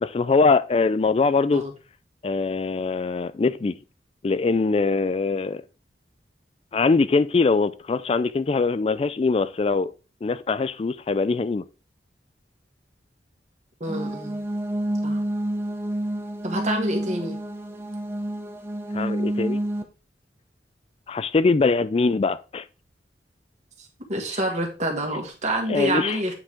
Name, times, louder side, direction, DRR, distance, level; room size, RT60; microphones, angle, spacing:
voice 1, 0.0-1.6 2.2-3.8 4.2-5.6 6.7-9.9 10.2-11.6 18.9-19.6 21.1-22.7 25.7-26.2, left 4 dB, 35° left, 0.3 m, -22 dB
sound 1, 13.8-19.8, right 1 dB, 15° right, 0.8 m, -29 dB
voice 2, 13.8-14.4 15.0-15.2 16.4-17.4 24.1-26.3, right 1 dB, 40° right, 2.0 m, -27 dB
8.8 x 4.8 x 3.6 m
head